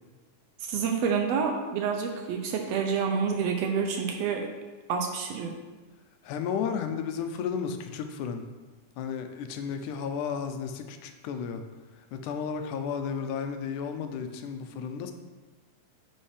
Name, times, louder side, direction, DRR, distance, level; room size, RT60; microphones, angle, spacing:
voice 1, 0.6-4.5 4.9-5.5, right 6 dB, 75° right, 3 dB, 1.5 m, -28 dB
voice 2, 6.2-8.4 9.0-11.6 12.1-15.1, left 6 dB, 85° left, 6 dB, 2.1 m, -33 dB
9.9 x 5.4 x 3.3 m, 1.3 s
omnidirectional pair, 3.5 m